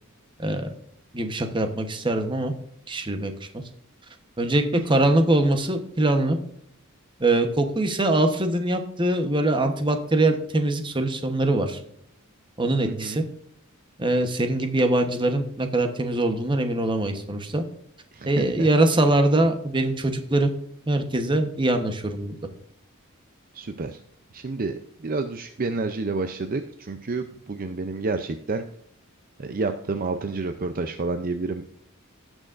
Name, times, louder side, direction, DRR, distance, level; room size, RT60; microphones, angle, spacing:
voice 1, 1.1-2.5 2.9-3.3 4.4-6.4 7.2-11.8 12.6-13.2 14.0-17.6 18.3-20.5 20.9-22.4, right 2 dB, 20° right, 6 dB, 1.0 m, -23 dB
voice 2, 12.8-13.3 18.1-18.7 23.5-24.0 24.3-28.6 29.4-31.6, right 3 dB, 40° right, 8 dB, 0.5 m, -29 dB
17.5 x 6.3 x 2.5 m, 0.70 s
head